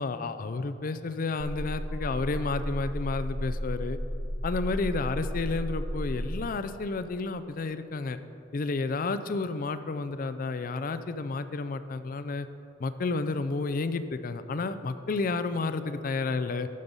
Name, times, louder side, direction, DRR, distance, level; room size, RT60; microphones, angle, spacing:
voice 1, 0.0-4.0 4.4-8.2 8.5-12.5 12.8-16.7, left 3 dB, 45° left, 12 dB, 0.4 m, -31 dB
sound 1, 1.4-6.4, equal, 10° left, 1.1 m, -33 dB
13.0 x 5.3 x 5.4 m, 2.7 s
head